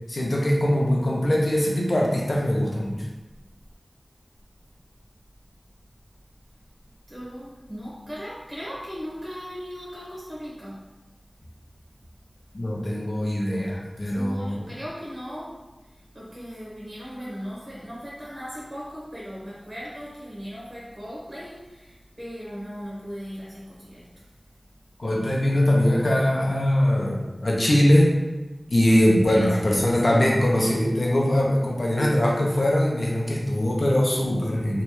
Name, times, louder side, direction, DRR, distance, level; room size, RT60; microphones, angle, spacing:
voice 1, 0.1-3.0 12.5-14.6 25.0-28.1 28.7-34.8, left 1 dB, 75° left, -2 dB, 0.6 m, -22 dB
voice 2, 7.1-10.8 14.1-15.6 16.1-24.0 29.3-29.9, equal, 40° right, -7 dB, 1.1 m, -38 dB
3.1 x 2.3 x 3.1 m, 1.1 s
wide cardioid pair, 40°, 0 cm